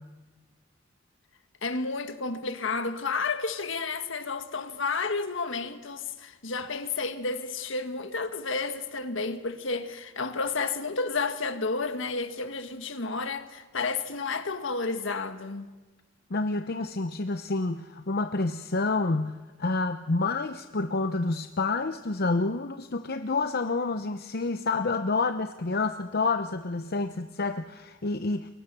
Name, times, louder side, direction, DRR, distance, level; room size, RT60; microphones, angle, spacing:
voice 1, 1.6-15.7, left 4 dB, 70° left, 1.7 m, -31 dB
voice 2, 16.3-28.5, left 3 dB, 50° left, 0.8 m, -28 dB
29.0 x 23.0 x 6.9 m
head